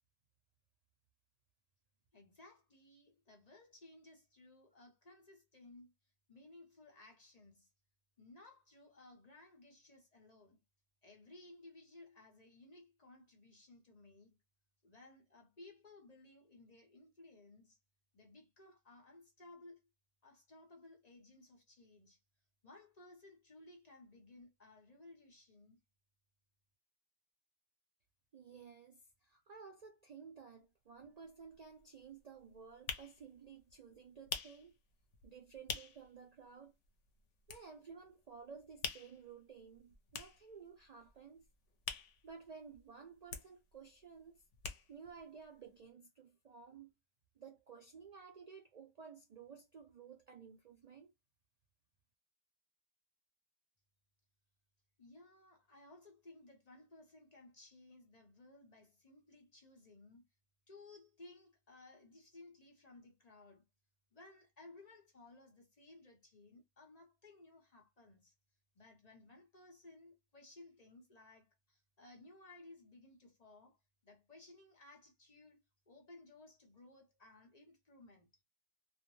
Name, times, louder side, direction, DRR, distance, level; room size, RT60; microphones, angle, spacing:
voice 1, 2.1-5.9 6.3-7.7 8.2-10.6 11.0-14.4 14.8-17.8 18.1-19.8 20.2-22.2 22.6-25.8 55.0-60.2 60.7-63.6 64.1-68.3 68.7-73.8 74.0-75.6 75.9-78.3, left 2 dB, 40° left, 0.8 m, -59 dB
voice 2, 28.3-34.7 35.2-36.8 37.5-41.4 42.2-44.4 44.9-46.9 47.4-51.1, right 6 dB, 55° right, 0.4 m, -54 dB
sound 1, 31.0-31.1 31.4-36.2 36.5-36.6 36.8-38.1 38.4-42.9 43.1-45.2 45.5-45.6 45.8-45.9, left 6 dB, 80° left, 0.9 m, -46 dB
2.5 x 2.0 x 3.0 m
omnidirectional pair, 1.2 m